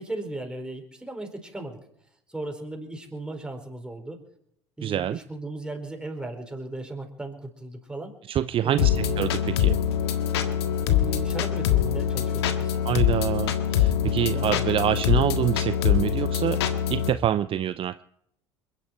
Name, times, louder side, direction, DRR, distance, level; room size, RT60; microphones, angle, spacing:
voice 1, 0.0-1.8 2.3-4.2 4.8-8.1 8.6-9.3 10.9-12.8 14.3-14.7, right 2 dB, 5° right, 3 dB, 4.5 m, -36 dB
voice 2, 4.8-5.2 8.3-9.8 12.8-16.6 16.9-18.0, right 11 dB, 40° right, 14 dB, 0.6 m, -26 dB
sound 1, 8.8-17.1, left 9 dB, 70° left, 1.6 m, -24 dB
28.5 x 10.5 x 4.6 m, 0.74 s
figure-of-eight pair, 60°, 14 cm